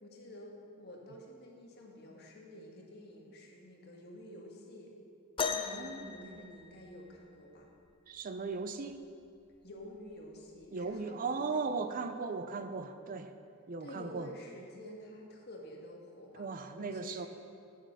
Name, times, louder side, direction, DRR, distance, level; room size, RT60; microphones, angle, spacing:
voice 1, 0.0-5.0 5.5-7.7 9.6-12.0 13.8-16.5 16.8-17.3, left 1 dB, 50° left, -1 dB, 1.5 m, -50 dB
sound 1, 5.4-7.3 8.9-9.0 9.8-10.1 11.0-11.1, left 5 dB, 25° left, 0.4 m, -37 dB
voice 2, 5.7-6.5 8.1-9.0 10.7-13.3 13.7-14.3 16.3-17.3, right 4 dB, 40° right, 9 dB, 0.4 m, -37 dB
8.6 x 7.3 x 6.7 m, 2.4 s
head